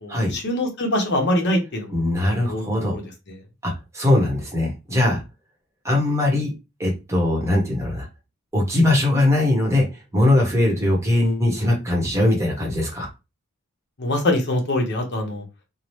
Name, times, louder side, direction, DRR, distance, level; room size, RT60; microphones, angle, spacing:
voice 1, 0.0-2.0 2.5-2.6 2.9-3.4 14.0-15.4, left 1 dB, 50° left, 3 dB, 0.8 m, -24 dB
voice 2, 1.9-2.9 3.6-5.2 5.8-6.5 6.8-8.1 8.5-9.9 10.1-13.1, left 1 dB, 15° right, -1 dB, 0.9 m, -20 dB
2.8 x 2.0 x 3.0 m, 0.26 s
head